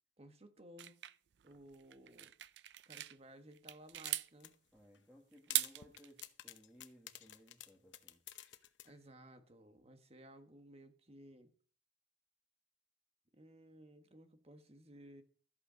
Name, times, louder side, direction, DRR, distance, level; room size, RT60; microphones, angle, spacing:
voice 1, 0.2-1.0 1.4-2.3 2.8-4.5 8.8-11.5 13.3-15.2, right 1 dB, 35° right, 1.4 m, -58 dB
sound 1, 0.8-3.2 3.5-4.3 5.3-6.2, right 15 dB, 70° right, 0.5 m, -40 dB
sound 2, 4.1-4.5 4.9-5.0 5.5-8.9, left 12 dB, 85° left, 0.9 m, -51 dB
voice 2, 4.7-8.2, equal, 5° right, 1.7 m, -62 dB
13.5 x 8.2 x 5.1 m
head